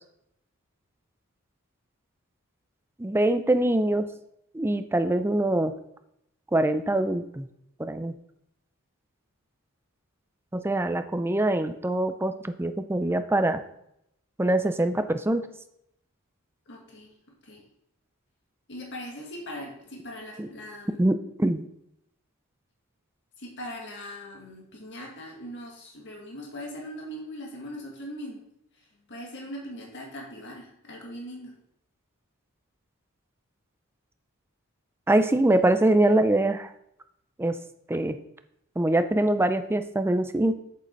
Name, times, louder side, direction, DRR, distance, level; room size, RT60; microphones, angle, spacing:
voice 1, 3.0-4.1 4.5-5.7 6.5-7.5 7.8-8.1 10.5-13.6 14.4-15.5 20.4-20.5 21.0-21.6 35.1-36.7 37.4-37.6 37.9-38.2 38.8-40.5, right 1 dB, 10° right, 9 dB, 0.4 m, -24 dB
voice 2, 16.7-17.1 17.4-17.6 18.7-21.0 23.4-28.4 29.1-31.5, equal, 55° left, -1 dB, 2.0 m, -40 dB
7.6 x 7.4 x 4.0 m, 0.77 s
head